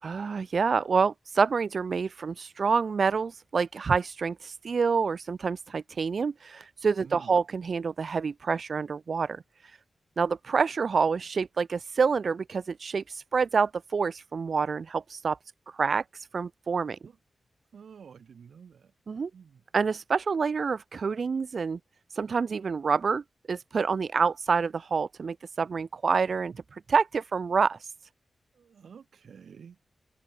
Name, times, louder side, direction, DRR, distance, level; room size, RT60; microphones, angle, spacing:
voice 1, 0.0-9.8 10.2-15.4 15.7-17.0 19.1-19.3 19.7-21.8 22.1-23.2 23.5-27.9, right 5 dB, 50° right, 1.1 m, -27 dB
voice 2, 7.0-7.4 17.0-17.2 17.7-18.9 19.3-19.6 28.5-29.8, right 7 dB, 75° right, 6.5 m, -50 dB
open air
wide cardioid pair, 130°, 0 cm